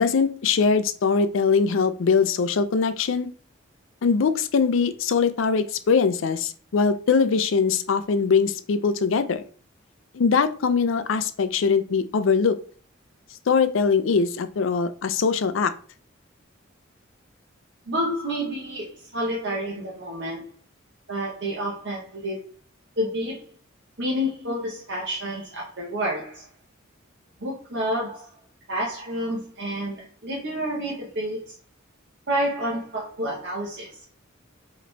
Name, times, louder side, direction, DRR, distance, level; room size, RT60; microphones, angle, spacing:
voice 1, 0.0-3.3 4.0-9.4 10.1-12.6 13.5-15.7, left 5 dB, 70° left, 12 dB, 0.4 m, -22 dB
voice 2, 17.9-20.5 21.1-22.4 23.0-23.5 24.0-26.5 27.4-28.3 28.7-31.5 32.3-34.0, equal, 55° right, -4 dB, 1.0 m, -29 dB
5.0 x 3.0 x 3.3 m, 0.43 s
head